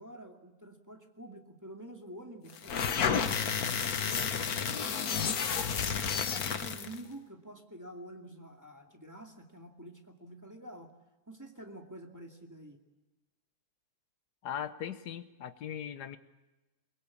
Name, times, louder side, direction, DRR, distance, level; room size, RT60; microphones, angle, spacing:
voice 1, 0.0-3.1 3.9-10.9 11.3-12.8, right 1 dB, 10° right, 2 dB, 2.3 m, -48 dB
sound 1, 2.6-7.0, left 7 dB, 70° left, 1.7 m, -31 dB
voice 2, 14.4-16.2, left 9 dB, 90° left, 11 dB, 1.6 m, -39 dB
23.5 x 22.0 x 8.5 m, 1.1 s
omnidirectional pair, 1.7 m